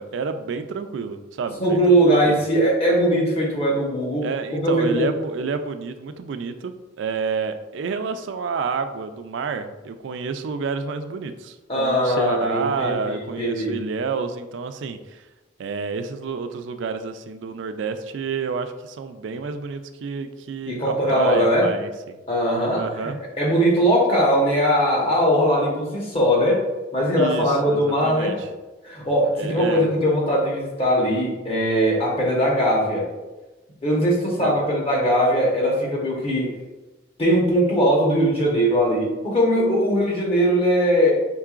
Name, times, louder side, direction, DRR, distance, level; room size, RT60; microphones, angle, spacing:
voice 1, 0.0-2.4 4.2-15.3 15.6-22.2 22.7-23.2 27.2-28.5 29.3-29.9 34.4-34.5, right 5 dB, 70° right, 9 dB, 0.3 m, -29 dB
voice 2, 1.6-5.1 11.7-13.0 13.4-13.8 20.7-21.7 22.3-23.1 23.4-26.6 26.9-28.4 28.8-33.1 33.8-36.6 37.2-41.1, equal, 30° left, -3 dB, 1.0 m, -20 dB
4.6 x 3.7 x 2.4 m, 1.1 s
head